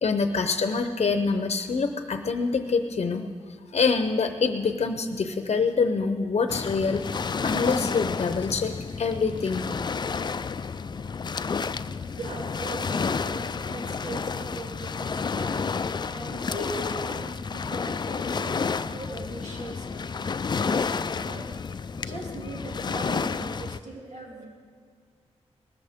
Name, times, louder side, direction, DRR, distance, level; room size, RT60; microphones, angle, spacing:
voice 1, 0.0-3.3 3.7-7.0 7.4-9.7, left 4 dB, 65° left, 8 dB, 0.7 m, -25 dB
Waves surf, 6.5-23.8, left 5 dB, 40° left, 0.3 m, -30 dB
voice 2, 11.7-15.7 16.1-18.6 18.9-20.1 20.6-21.5 22.0-24.4, right 2 dB, 80° right, -2 dB, 2.6 m, -40 dB
19.5 x 14.0 x 3.6 m, 2.1 s
wide cardioid pair, 95°, 12 cm